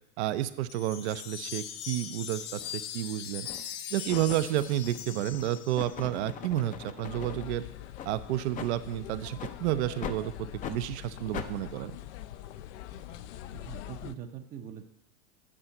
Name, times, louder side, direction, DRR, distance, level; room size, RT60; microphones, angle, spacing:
voice 1, 0.2-3.5 3.9-7.6 8.0-11.9, right 13 dB, 70° right, 12 dB, 0.7 m, -31 dB
Wind chime, 0.7-6.1, left 9 dB, 45° left, 0.9 m, -40 dB
sound 1, 2.6-2.8 3.4-3.7 4.1-7.5 7.9-8.1 8.5-8.7 9.4-9.6 10.0-10.2 10.6-10.8 11.3-11.5, left 8 dB, 25° left, 0.5 m, -41 dB
sound 2, 7.0-14.1, left 13 dB, 70° left, 0.6 m, -44 dB
voice 2, 13.5-14.8, right 9 dB, 25° right, 4 dB, 0.6 m, -43 dB
8.8 x 5.5 x 7.7 m, 0.82 s
supercardioid pair, 140°, 35 cm